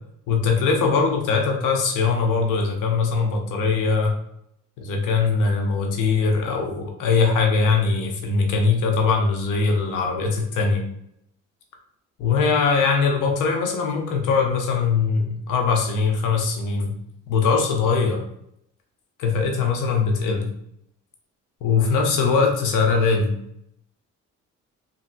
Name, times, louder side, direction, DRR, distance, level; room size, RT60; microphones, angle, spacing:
voice 1, 0.3-4.1 4.8-10.8 12.2-16.9 17.3-18.2 19.2-20.5 21.6-23.3, left 4 dB, 85° left, 2 dB, 0.8 m, -21 dB
3.1 x 2.7 x 2.6 m, 0.73 s
cardioid pair, 90°, 30 cm